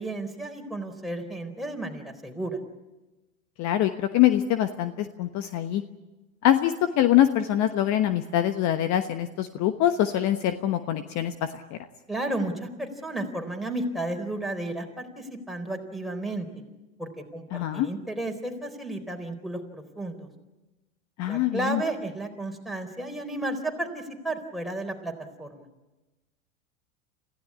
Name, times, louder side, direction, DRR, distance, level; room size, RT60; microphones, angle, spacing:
voice 1, 0.0-2.6 12.1-16.5 17.0-20.3 21.3-25.1 25.4-25.7, right 2 dB, ahead, 2 dB, 4.0 m, -33 dB
voice 2, 3.6-5.8 6.4-11.5 17.5-17.9 21.2-21.8, left 12 dB, 45° left, 9 dB, 1.2 m, -24 dB
27.0 x 16.0 x 9.6 m, 1.1 s
hypercardioid pair, 90°, 40 cm